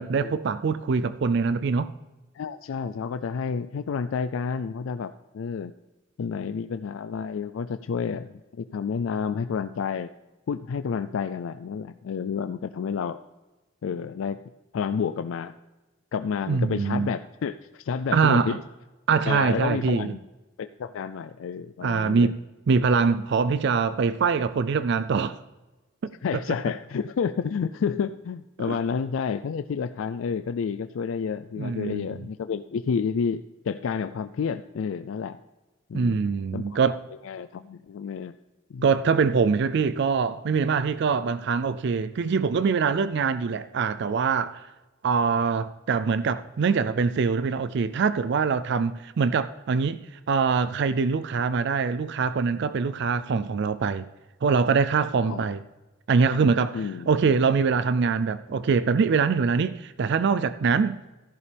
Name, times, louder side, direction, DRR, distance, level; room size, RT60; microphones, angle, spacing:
voice 1, 0.0-1.9 16.5-17.1 18.1-18.6 19.1-20.1 21.8-22.3 22.7-25.4 26.0-26.1 28.7-28.8 31.6-32.3 35.9-37.0 38.8-44.7 45.0-50.0 50.3-54.1 54.4-55.6 56.1-61.0, right 5 dB, 60° right, 0.4 m, -23 dB
voice 2, 2.3-5.7 6.2-10.1 10.5-13.2 13.8-14.4 14.7-15.6 16.1-18.6 19.3-20.2 20.6-22.3 26.2-35.4 35.9-37.0 37.2-38.3 38.7-38.8 55.3-55.5 56.7-57.1, left 6 dB, 80° left, 0.4 m, -30 dB
14.0 x 11.0 x 3.4 m
head